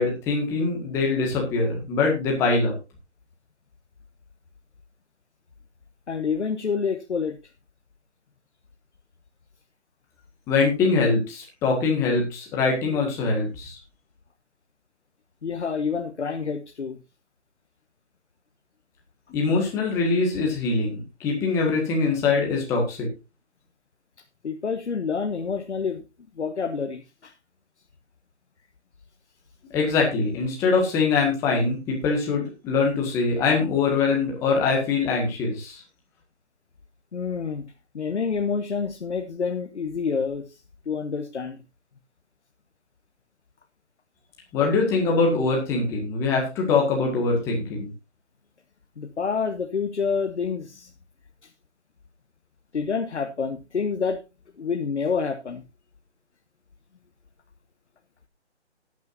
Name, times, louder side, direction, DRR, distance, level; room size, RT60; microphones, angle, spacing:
voice 1, 0.0-2.7 10.5-13.8 19.3-23.1 29.7-35.8 44.5-47.9, left 4 dB, 10° left, 0 dB, 1.8 m, -23 dB
voice 2, 6.1-7.4 12.9-13.0 15.4-17.0 24.4-26.0 26.3-27.3 37.1-41.6 49.0-50.9 51.4-51.5 52.7-54.2 54.6-55.6, left 5 dB, 75° left, 5 dB, 1.4 m, -28 dB
16.5 x 9.3 x 2.7 m, 0.27 s
hypercardioid pair, 165°, 35 cm